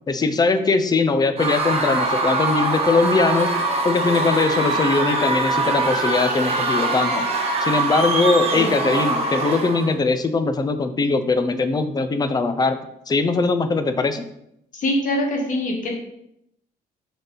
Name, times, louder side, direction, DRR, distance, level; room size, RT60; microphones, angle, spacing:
voice 1, 0.1-3.5 3.8-7.3 7.6-12.8 13.1-14.3, left 3 dB, 25° left, 9 dB, 0.6 m, -21 dB
Screaming / Cheering / Crowd, 1.4-9.9, right 2 dB, 35° right, 1.3 m, -23 dB
voice 2, 14.7-15.9, left 1 dB, 50° left, 0 dB, 1.6 m, -23 dB
6.5 x 4.1 x 4.0 m, 0.77 s
cardioid pair, 110°, 17 cm